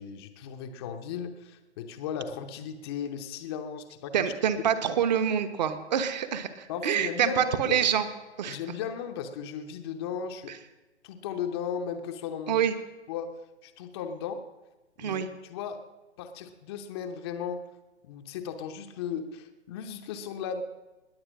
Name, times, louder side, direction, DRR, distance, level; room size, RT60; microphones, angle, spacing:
voice 1, 0.0-4.2 6.7-7.8 8.5-10.5 11.0-12.6 13.1-13.3 13.6-14.4 15.0-15.2 15.5-15.8 16.2-17.6 18.0-20.6, left 7 dB, 20° left, 6 dB, 0.7 m, -36 dB
voice 2, 4.1-8.1 8.4-8.6 10.5-10.6 12.5-12.7 15.0-15.3, right 8 dB, 40° right, 8 dB, 1.2 m, -26 dB
20.5 x 8.1 x 6.2 m, 1.1 s
figure-of-eight pair, 140°, 35 cm